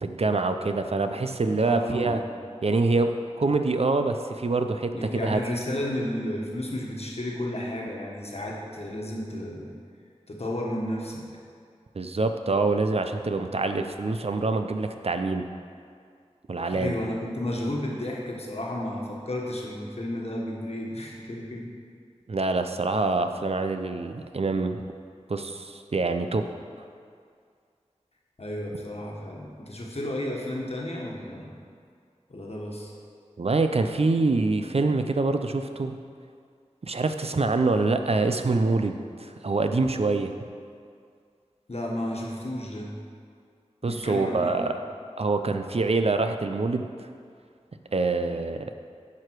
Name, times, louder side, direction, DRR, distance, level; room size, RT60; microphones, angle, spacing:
voice 1, 0.0-2.2 2.6-4.9 5.2-5.4 12.0-15.5 16.5-17.0 22.3-24.8 25.3-26.4 33.4-35.9 36.8-40.3 43.8-44.7 45.2-47.1 47.9-48.7, right 3 dB, 60° right, 7 dB, 0.5 m, -25 dB
voice 2, 1.5-2.2 4.9-9.7 10.3-11.2 16.6-21.7 28.4-31.5 32.3-32.9 41.7-42.9 43.8-44.6, left 1 dB, 60° left, -2 dB, 1.4 m, -32 dB
10.5 x 4.8 x 4.7 m, 2.2 s
wide cardioid pair, 55°, 12 cm